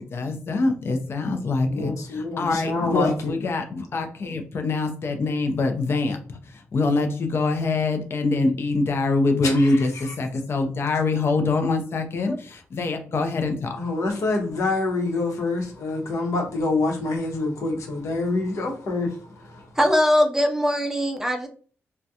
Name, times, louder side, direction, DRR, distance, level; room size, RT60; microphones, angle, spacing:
voice 1, 0.0-13.8, left 3 dB, 50° left, 0.5 m, -24 dB
voice 2, 1.7-3.1 9.4-9.7 13.8-19.7, left 3 dB, 85° left, 0.8 m, -26 dB
voice 3, 19.8-21.5, equal, 10° right, 0.4 m, -21 dB
2.3 x 2.1 x 2.7 m
wide cardioid pair, 110°, 5 cm